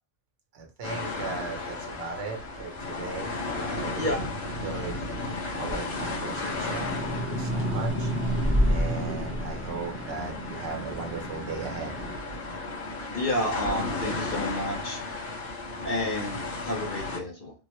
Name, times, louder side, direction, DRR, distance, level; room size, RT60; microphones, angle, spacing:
voice 1, 0.5-4.3 4.6-5.0 5.6-8.1 8.7-11.9, right 5 dB, 65° right, 2 dB, 1.0 m, -37 dB
sound 1, 0.8-17.2, left 3 dB, 70° left, 1.6 m, -35 dB
sound 2, 2.5-5.1 5.5-12.2, equal, 15° left, 0.6 m, -30 dB
sound 3, 4.7-16.5, equal, 25° right, 0.8 m, -49 dB
voice 2, 13.1-15.0 15.8-17.5, left 1 dB, 50° left, 0 dB, 0.8 m, -30 dB
3.5 x 2.1 x 2.9 m, 0.33 s
omnidirectional pair, 1.1 m